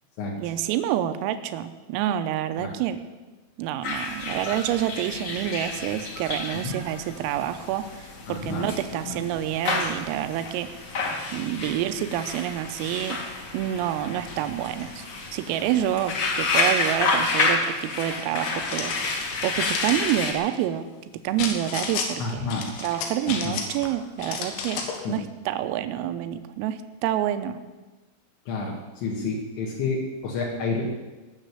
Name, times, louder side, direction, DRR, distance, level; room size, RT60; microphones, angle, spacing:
voice 1, 0.4-3.0 3.6-10.8 11.3-13.2 13.5-15.0 15.3-18.9 19.4-20.9 21.2-22.5 22.8-24.8 25.1-27.6, right 11 dB, 85° right, 9 dB, 3.4 m, -28 dB
sound 1, 3.8-20.3, left 3 dB, 50° left, 2.2 m, -30 dB
voice 2, 8.3-8.7 9.1-9.2 22.2-22.6 23.3-23.6 25.1-25.2 28.5-30.8, left 4 dB, 65° left, -2 dB, 3.7 m, -30 dB
sound 2, 18.3-20.2 21.4-22.1 22.5-23.9 24.2-25.0, left 5 dB, 85° left, 4.3 m, -33 dB
19.0 x 6.6 x 8.4 m, 1.2 s
omnidirectional pair, 6.0 m